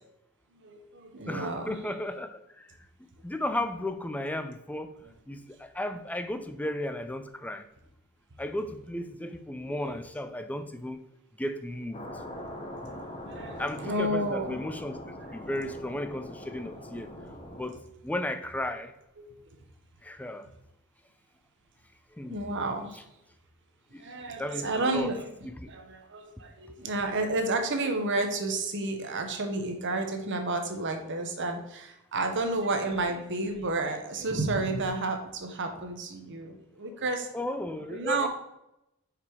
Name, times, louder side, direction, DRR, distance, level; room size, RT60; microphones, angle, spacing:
voice 1, 0.5-1.8 9.7-9.9 13.3-14.6 19.2-19.3 22.3-23.0 24.0-25.3 25.7-37.3 37.9-38.3, right 2 dB, 55° right, 5 dB, 1.0 m, -31 dB
voice 2, 1.3-2.7 3.2-5.0 5.3-7.7 8.4-11.0 11.4-12.1 13.6-15.0 15.3-17.1 17.5-18.9 20.0-20.5 22.1-22.6 23.9-24.1 24.4-25.1 25.4-25.7 36.9-37.0 37.3-38.3, left 1 dB, 5° left, 9 dB, 0.4 m, -34 dB
sound 1, 11.9-17.7, left 1 dB, 25° left, 0.9 m, -42 dB
5.3 x 4.9 x 4.6 m, 0.87 s
head